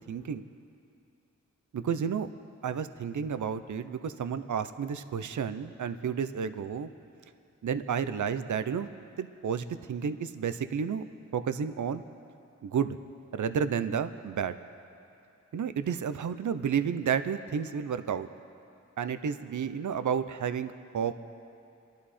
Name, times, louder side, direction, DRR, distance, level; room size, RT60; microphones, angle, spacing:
voice 1, 0.1-0.5 1.7-2.3 2.6-6.9 7.6-8.9 9.2-11.0 11.3-12.0 12.6-13.0 13.3-14.6 15.5-18.3 19.0-21.2, right 7 dB, 75° right, 11 dB, 0.7 m, -31 dB
27.5 x 11.5 x 4.3 m, 2.6 s
cardioid pair, 55°, 30 cm